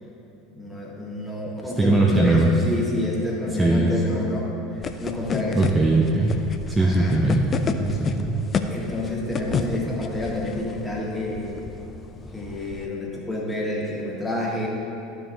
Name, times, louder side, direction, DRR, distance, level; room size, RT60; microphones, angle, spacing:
voice 1, 0.5-5.6 6.8-7.2 8.6-11.5 12.3-14.7, left 1 dB, 10° left, -4 dB, 1.8 m, -29 dB
voice 2, 1.6-2.5 3.6-3.9 5.5-6.3 6.7-7.5 7.8-8.3, right 2 dB, 10° right, -2 dB, 0.8 m, -20 dB
sound 1, 4.8-12.9, left 5 dB, 30° left, 0.5 m, -31 dB
12.5 x 6.0 x 2.8 m, 2.8 s
figure-of-eight pair, 75°, 0 cm